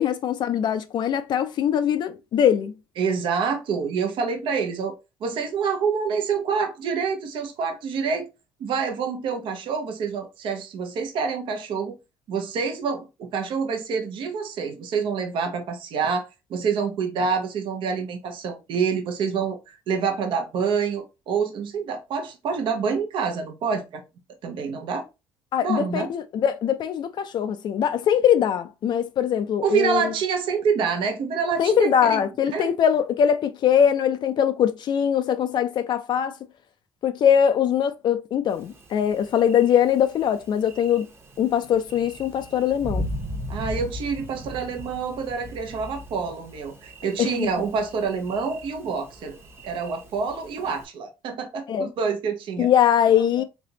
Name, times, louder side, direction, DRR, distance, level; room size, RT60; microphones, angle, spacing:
voice 1, 0.0-2.7 25.5-30.1 31.6-36.3 37.0-41.1 41.4-43.1 47.2-47.5 51.7-51.9 52.6-53.4, left 9 dB, 55° left, 0.4 m, -22 dB
voice 2, 3.0-5.0 5.2-8.3 8.6-11.9 12.3-24.0 24.4-25.0 25.6-26.1 29.6-32.2 32.5-32.7 43.5-49.4 49.6-52.7, right 5 dB, 65° right, 0.8 m, -27 dB
Thunder, 38.5-50.9, equal, 25° right, 1.0 m, -38 dB
3.3 x 2.9 x 2.7 m
supercardioid pair, 80°, 9 cm